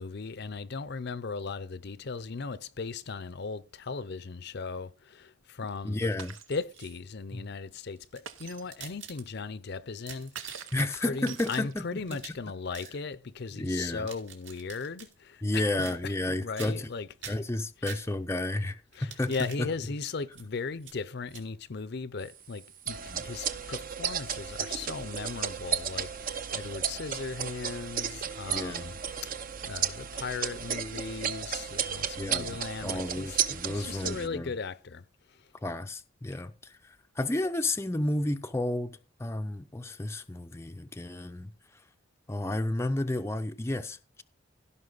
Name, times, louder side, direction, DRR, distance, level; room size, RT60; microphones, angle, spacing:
voice 1, 0.0-6.1 6.5-17.1 18.9-23.0 23.2-33.4 33.7-35.5, left 4 dB, 55° left, 0.6 m, -37 dB
voice 2, 5.8-6.3 7.3-7.5 10.7-12.4 13.6-14.1 15.4-16.9 17.3-19.3 19.6-19.7 23.1-23.2 28.5-28.9 32.2-34.5 35.6-41.5 42.3-44.2, left 1 dB, 15° left, 0.5 m, -32 dB
Shatter, 6.2-6.6 8.3-8.7 10.4-12.1, right 8 dB, 85° right, 1.0 m, -45 dB
sound 1, 6.5-7.2 8.0-9.6 9.9-10.9 11.2-12.5 12.7-13.0 13.8-15.1 15.8-16.3 16.6-16.9 17.2-18.4 18.9-19.6 20.3-20.5 20.8-21.0 21.3-21.4, right 7 dB, 65° right, 2.9 m, -47 dB
sound 2, 22.9-34.3, right 8 dB, 45° right, 0.7 m, -34 dB
16.5 x 5.5 x 4.0 m
head